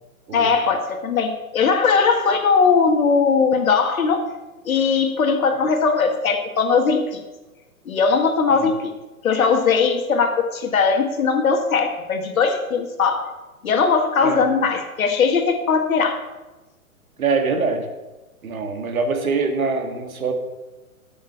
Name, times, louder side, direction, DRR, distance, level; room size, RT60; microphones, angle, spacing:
voice 1, 0.3-4.2 4.7-7.2 7.9-8.9 9.2-13.3 13.6-16.2, left 5 dB, 70° left, 5 dB, 1.7 m, -19 dB
voice 2, 17.2-17.9 18.4-20.3, right 4 dB, 70° right, 6 dB, 1.7 m, -24 dB
8.9 x 6.5 x 7.0 m, 1.1 s
hypercardioid pair, 125°, 43 cm